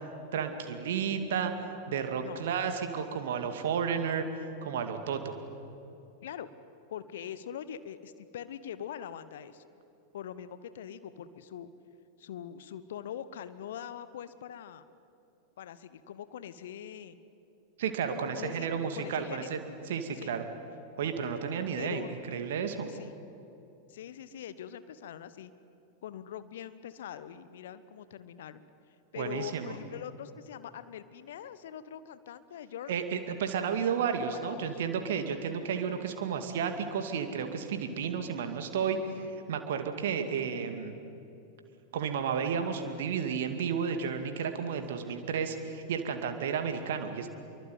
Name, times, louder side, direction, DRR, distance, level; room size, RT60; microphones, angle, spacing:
voice 1, 0.3-1.5 1.9-4.2 4.6-5.4 17.8-19.6 19.9-20.4 21.0-22.9 29.2-29.7 32.9-39.0 39.5-40.9 41.9-47.3, right 7 dB, 55° right, 7 dB, 2.3 m, -32 dB
voice 2, 6.9-9.6 10.1-11.7 12.2-14.9 15.6-17.2 18.0-19.5 20.1-20.4 21.8-22.3 22.9-23.2 23.9-25.5 26.0-28.6 29.1-33.1 34.3-34.8, left 9 dB, 60° left, 14 dB, 1.1 m, -43 dB
26.5 x 23.5 x 9.4 m, 2.7 s
figure-of-eight pair, 90°, 0 cm